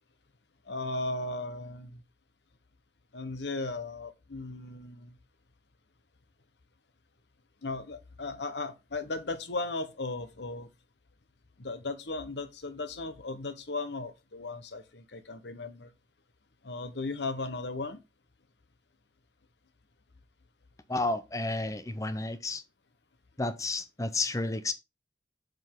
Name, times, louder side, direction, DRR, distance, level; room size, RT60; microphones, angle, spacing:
voice 1, 0.7-2.0 3.1-5.2 7.6-10.7 11.6-15.9 16.6-18.0, left 3 dB, 75° left, 1.0 m, -36 dB
voice 2, 20.9-22.6 23.4-24.7, left 2 dB, 20° left, 0.7 m, -31 dB
7.7 x 5.3 x 3.6 m
head